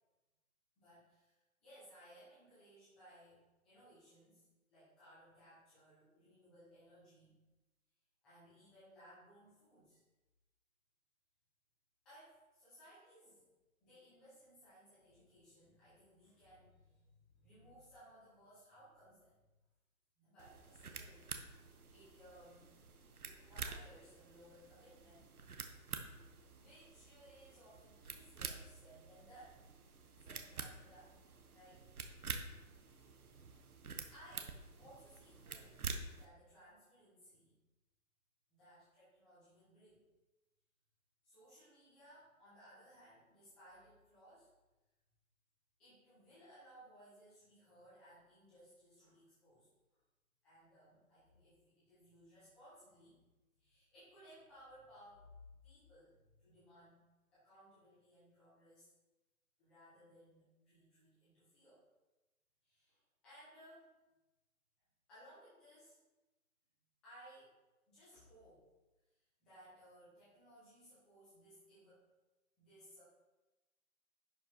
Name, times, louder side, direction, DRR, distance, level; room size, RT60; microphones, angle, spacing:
voice 1, 0.8-7.3 8.2-10.0 12.0-13.5 13.8-19.4 20.2-21.3 21.9-22.7 23.1-25.3 26.5-29.6 30.2-31.2 31.5-31.9 32.8-33.2 34.1-37.5 38.5-40.1 41.2-44.5 45.8-50.0 50.4-53.2 53.6-57.0 57.3-58.9 59.6-61.8 62.6-63.9 65.1-66.0 67.0-67.5 67.9-68.7 69.1-72.0 72.6-73.0, equal, ahead, -14 dB, 0.9 m, -62 dB
sound 1, 20.4-36.3, right 5 dB, 90° right, 1.5 m, -49 dB
11.0 x 5.5 x 4.6 m, 1.1 s
hypercardioid pair, 175°, 43 cm